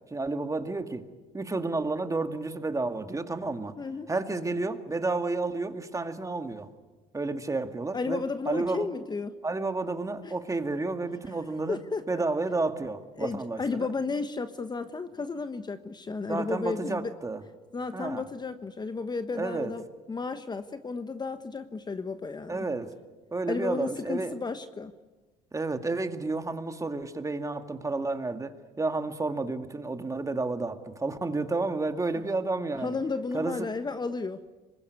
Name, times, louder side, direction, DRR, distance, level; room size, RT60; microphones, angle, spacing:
voice 1, 0.1-1.0 1.3-3.7 4.1-6.7 7.1-8.9 9.4-11.8 12.1-13.9 16.3-17.4 17.9-18.2 19.3-19.7 22.5-22.9 23.3-24.3 25.5-33.0 33.3-33.7, right 3 dB, 20° right, 7 dB, 2.2 m, -31 dB
voice 2, 3.8-4.1 7.9-9.4 10.2-10.3 11.7-12.0 13.2-17.1 17.7-19.8 20.1-22.7 23.5-24.9 32.8-34.4, left 4 dB, 25° left, 10 dB, 1.2 m, -33 dB
24.5 x 21.5 x 9.6 m, 1.3 s
supercardioid pair, 80°, 17 cm